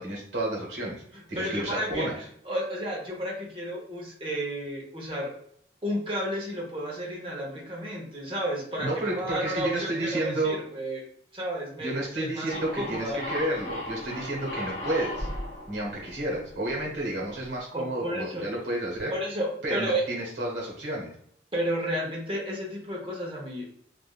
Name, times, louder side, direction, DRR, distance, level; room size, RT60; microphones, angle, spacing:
voice 1, 0.0-2.2 8.8-10.6 11.8-15.3 15.7-19.1 19.6-21.1, right 1 dB, 80° right, -2 dB, 1.0 m, -31 dB
voice 2, 1.3-2.1 2.5-5.3 5.8-11.0 11.3-13.3 17.0-17.1 17.7-18.5 19.1-20.0 21.5-23.7, equal, 30° right, -2 dB, 0.8 m, -32 dB
sound 1, 12.5-17.0, left 1 dB, 35° left, 0.7 m, -36 dB
3.3 x 2.4 x 2.3 m, 0.65 s
head